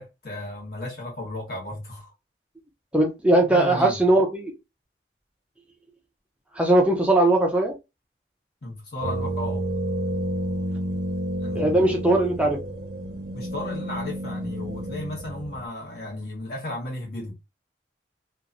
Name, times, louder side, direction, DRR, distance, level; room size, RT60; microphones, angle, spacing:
voice 1, 0.0-2.1 3.5-4.0 8.6-9.7 11.4-11.9 13.3-17.3, left 1 dB, 55° left, 1.3 m, -34 dB
voice 2, 2.9-4.5 6.5-7.7 11.5-12.6, right 1 dB, 5° right, 0.5 m, -20 dB
sound 1, 9.0-15.7, right 1 dB, 60° right, 0.7 m, -30 dB
2.9 x 2.4 x 2.5 m
head